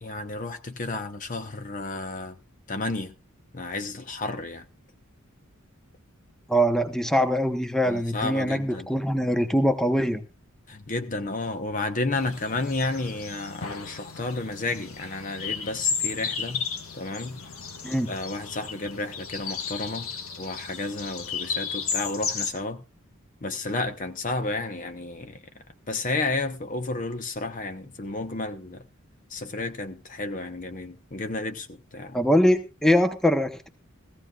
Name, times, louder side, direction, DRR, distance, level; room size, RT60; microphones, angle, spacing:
voice 1, 0.0-2.4 2.7-3.1 3.5-4.6 7.8-8.9 10.7-16.6 16.9-17.4 18.1-20.1 20.4-22.8 23.4-25.4 25.9-28.9 29.3-32.2, left 2 dB, 35° left, 0.9 m, -32 dB
voice 2, 6.5-10.2 17.8-18.1 32.1-33.7, equal, ahead, 0.9 m, -23 dB
sound 1, 12.1-22.5, left 6 dB, 75° left, 1.6 m, -34 dB
17.0 x 15.0 x 2.4 m
head